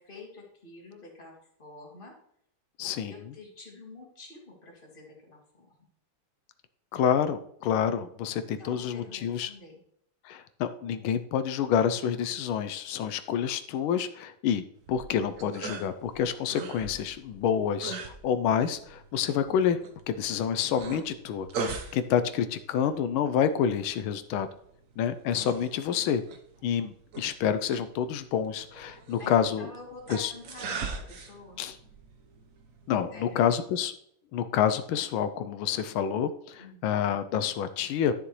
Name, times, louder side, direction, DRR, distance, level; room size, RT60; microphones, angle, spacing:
voice 1, 0.0-2.1 2.8-5.8 8.4-9.8 29.2-31.6 33.1-33.5 36.6-36.8, left 2 dB, 25° left, -1 dB, 2.1 m, -48 dB
voice 2, 2.8-3.3 6.9-9.5 10.2-19.8 20.1-24.5 25.0-26.2 26.6-29.7 30.1-30.3 31.6-31.8 32.9-33.9 34.3-38.1, left 8 dB, 90° left, 11 dB, 1.5 m, -28 dB
sound 1, 14.8-33.5, right 4 dB, 55° right, 1.1 m, -42 dB
11.0 x 6.7 x 3.1 m, 0.69 s
omnidirectional pair, 2.2 m